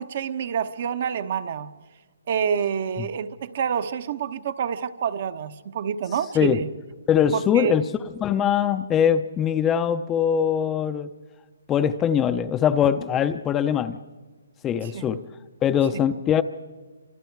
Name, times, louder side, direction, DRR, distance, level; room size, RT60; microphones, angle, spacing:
voice 1, 0.0-1.7 2.3-6.7 7.3-7.8 14.8-15.1, right 7 dB, 45° right, 11 dB, 1.0 m, -27 dB
voice 2, 7.1-7.9 8.2-11.1 11.7-14.0 14.6-15.2 15.6-16.4, left 8 dB, 15° left, 10 dB, 0.6 m, -22 dB
28.5 x 26.0 x 4.7 m, 1.3 s
hypercardioid pair, 160°, 0 cm